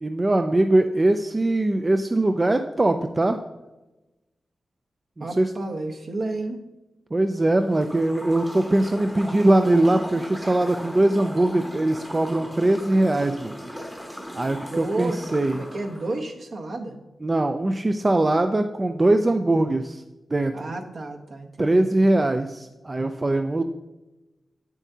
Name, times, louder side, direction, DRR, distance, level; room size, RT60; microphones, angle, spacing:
voice 1, 0.0-3.4 5.2-5.5 7.1-13.5 14.3-15.6 17.2-20.0 20.3-20.5 21.6-23.6, right 2 dB, 25° right, 6 dB, 0.3 m, -21 dB
voice 2, 5.2-6.6 14.7-17.0 19.3-19.7 20.5-21.9, right 2 dB, 55° right, 3 dB, 0.9 m, -32 dB
sound 1, 7.5-16.2, equal, ahead, 0.8 m, -38 dB
8.2 x 7.2 x 2.8 m, 1.0 s
wide cardioid pair, 135°, 0 cm